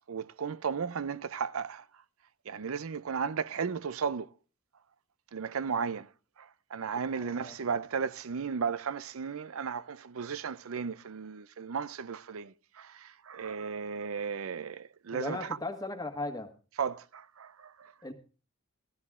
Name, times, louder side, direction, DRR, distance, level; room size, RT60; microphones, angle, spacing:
voice 1, 0.1-1.9 2.5-4.3 5.3-6.1 6.4-15.6 16.8-17.9, right 6 dB, 85° right, 0.6 m, -35 dB
voice 2, 7.1-7.5 15.1-16.5 18.0-18.1, left 2 dB, 20° left, 1.7 m, -37 dB
15.0 x 13.0 x 3.6 m
head